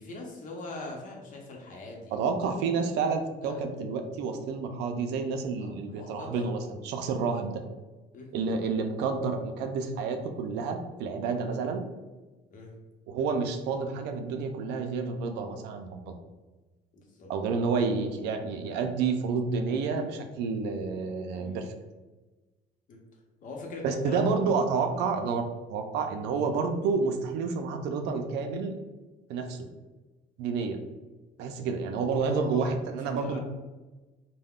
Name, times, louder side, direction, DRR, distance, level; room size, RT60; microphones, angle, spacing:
voice 1, 0.0-2.2 3.4-3.6 5.6-6.4 8.1-8.3 12.5-12.7 16.9-17.3 21.4-21.6 22.9-23.0 23.4-24.3 25.0-25.1 32.3-32.7 33.2-33.4, left 2 dB, 50° left, 0 dB, 0.8 m, -42 dB
voice 2, 2.1-7.6 8.3-11.8 13.1-16.1 17.3-21.7 23.8-25.4 25.7-28.8 29.3-29.7 30.4-30.8 31.4-33.4, right 4 dB, 85° right, 6 dB, 0.4 m, -29 dB
3.4 x 2.1 x 2.3 m, 1.2 s
cardioid pair, 110°, 17 cm